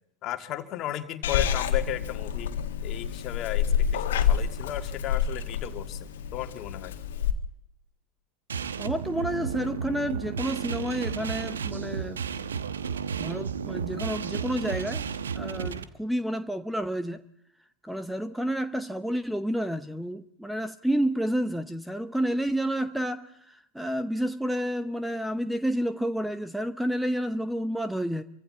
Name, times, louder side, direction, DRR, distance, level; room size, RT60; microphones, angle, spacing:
voice 1, 0.2-2.6 2.8-6.9, left 13 dB, 40° left, 1.9 m, -35 dB
Purr / Meow, 1.2-7.3, left 8 dB, 60° left, 1.7 m, -28 dB
sound 1, 8.5-15.8, right 6 dB, 75° right, 1.0 m, -32 dB
voice 2, 8.8-12.5 13.2-15.0 15.3-17.2 17.8-28.2, equal, ahead, 0.8 m, -30 dB
27.5 x 24.5 x 4.1 m
figure-of-eight pair, 85°, 0 cm